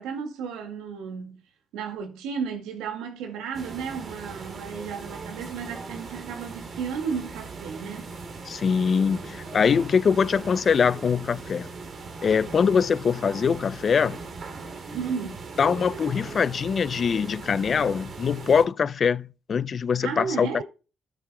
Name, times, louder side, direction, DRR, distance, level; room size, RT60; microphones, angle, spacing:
voice 1, 0.0-1.4 1.7-8.2 14.9-15.5 20.0-20.6, right 6 dB, 90° right, 2.0 m, -33 dB
sound 1, 3.5-18.6, right 4 dB, 60° right, 2.8 m, -39 dB
voice 2, 8.5-11.7 12.2-14.2 15.6-20.6, left 6 dB, 55° left, 0.4 m, -23 dB
13.0 x 9.0 x 2.2 m
supercardioid pair, 65°, 0 cm